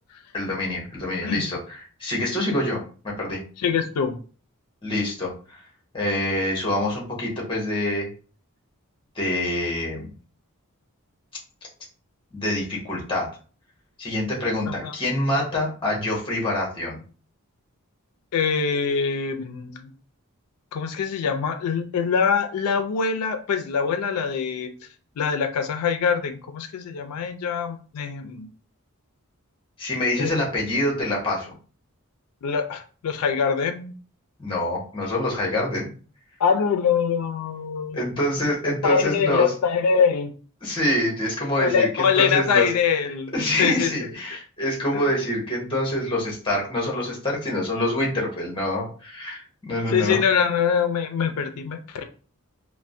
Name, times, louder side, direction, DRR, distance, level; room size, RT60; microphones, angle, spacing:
voice 1, 0.3-3.4 4.8-5.6 5.9-8.1 9.1-10.1 12.3-13.3 14.0-17.0 29.8-31.5 34.4-35.9 37.9-39.5 40.6-42.7 43.3-50.2, left 1 dB, 25° left, -2 dB, 0.9 m, -26 dB
voice 2, 3.6-4.2 14.7-14.9 18.3-19.9 20.7-24.7 25.2-28.5 30.2-30.4 32.4-33.9 36.4-38.0 38.8-40.3 41.6-43.3 43.6-43.9 44.9-45.0 49.9-52.0, left 6 dB, 90° left, 7 dB, 0.4 m, -23 dB
3.2 x 2.1 x 2.6 m, 0.39 s
head